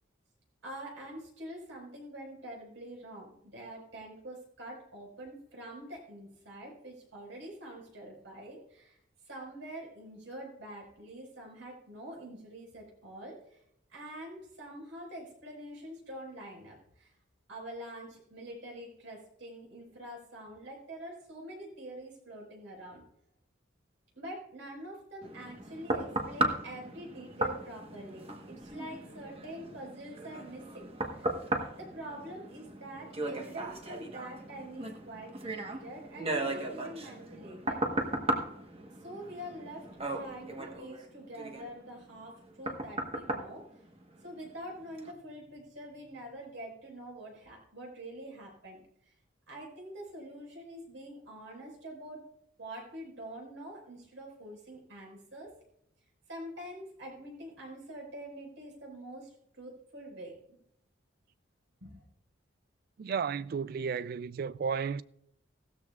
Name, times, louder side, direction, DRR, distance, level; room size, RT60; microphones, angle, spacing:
voice 1, 0.6-9.0 9.3-13.6 13.9-17.1 17.5-23.0 24.1-31.3 31.8-37.8 39.0-43.6 44.2-48.8 49.1-49.2 49.5-52.3 52.6-55.5 56.3-60.6 61.8-62.0, right 1 dB, 75° right, 4.9 m, -45 dB
sound 1, 25.2-44.5 45.0-45.1, right 2 dB, 30° right, 1.2 m, -36 dB
voice 2, 63.0-65.0, right 6 dB, 50° right, 0.3 m, -33 dB
16.5 x 13.0 x 2.4 m
head